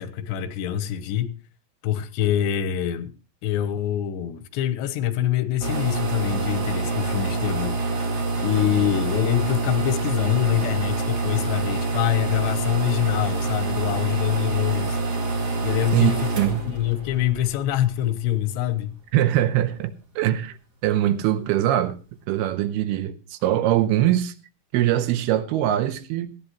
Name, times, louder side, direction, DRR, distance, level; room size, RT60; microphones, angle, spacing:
voice 1, 0.0-1.4 1.8-3.1 3.4-7.8 8.4-15.0 15.6-18.9, left 12 dB, 90° left, 3.2 m, -25 dB
sound 1, 5.6-18.0, right 3 dB, 40° right, 1.4 m, -26 dB
voice 2, 15.9-16.6 19.1-20.6 20.8-22.0 22.3-24.3 24.7-26.3, right 12 dB, 80° right, 2.6 m, -22 dB
18.0 x 13.5 x 3.0 m
omnidirectional pair, 4.8 m